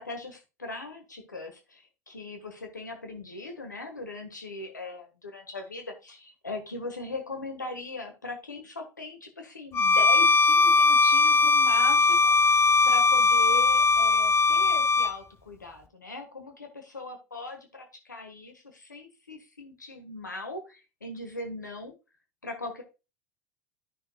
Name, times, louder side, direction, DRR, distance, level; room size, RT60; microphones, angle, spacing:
voice 1, 0.0-12.6 12.8-21.9 22.4-22.8, left 2 dB, 90° left, 5 dB, 1.5 m, -39 dB
Bowed string instrument, 9.7-15.2, left 4 dB, 30° left, 1.3 m, -20 dB
13.5 x 6.1 x 2.3 m, 0.28 s
figure-of-eight pair, 80°, 10 cm